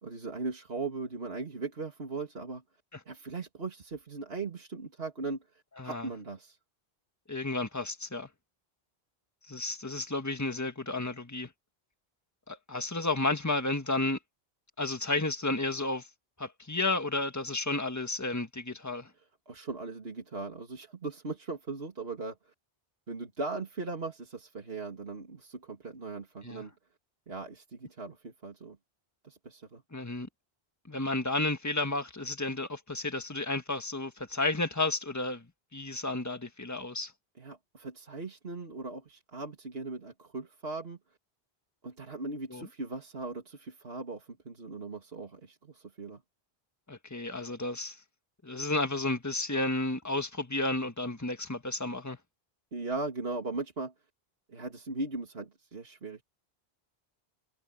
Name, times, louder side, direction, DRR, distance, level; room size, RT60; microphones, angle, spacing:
voice 1, 0.0-2.6 3.1-6.6 19.5-22.5 23.1-26.7 27.3-28.8 29.2-29.8 37.4-41.0 41.8-46.2 52.7-53.9 54.5-56.2, right 3 dB, 70° right, 2.7 m, -39 dB
voice 2, 5.8-6.1 7.3-8.3 9.5-11.5 12.5-14.2 14.8-16.1 16.4-19.1 26.4-26.6 29.9-30.3 30.9-35.4 35.7-37.1 42.5-42.7 46.9-48.0 48.4-52.2, left 2 dB, 15° left, 1.7 m, -32 dB
omnidirectional pair, 1.1 m